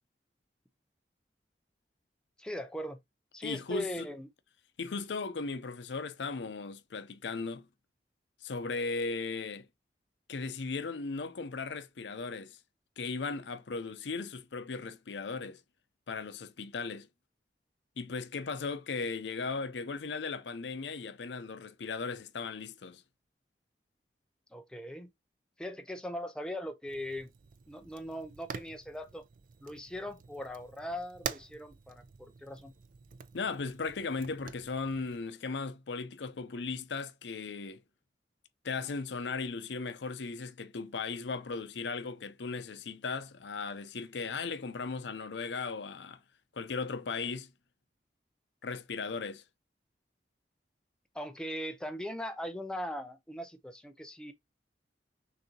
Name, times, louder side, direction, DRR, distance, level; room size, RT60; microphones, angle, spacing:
voice 1, 2.4-3.0 3.3-4.3 24.5-25.1 25.6-27.3 27.7-29.2 29.6-32.7 51.1-54.3, equal, 5° left, 0.5 m, -40 dB
voice 2, 3.4-4.1 4.8-7.7 8.4-9.7 10.3-12.6 13.0-15.6 16.1-17.1 18.0-23.0 33.3-37.8 38.6-46.2 46.5-47.5 48.6-49.4, left 4 dB, 85° left, 0.6 m, -37 dB
Fire, 26.9-35.2, right 6 dB, 50° right, 0.4 m, -47 dB
6.4 x 2.7 x 2.8 m
head